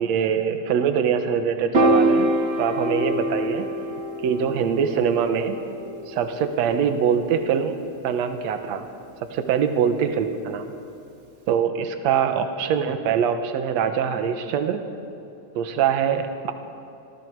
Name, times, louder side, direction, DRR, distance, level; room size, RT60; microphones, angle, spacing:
voice 1, 0.0-2.3 2.6-3.7 4.2-5.6 6.1-7.8 8.0-8.9 9.3-10.7 11.5-14.8 15.6-16.5, right 7 dB, 70° right, 7 dB, 2.3 m, -23 dB
Piano, 1.7-8.1, right 1 dB, 40° right, 1.0 m, -25 dB
27.5 x 21.0 x 4.7 m, 2.7 s
omnidirectional pair, 3.3 m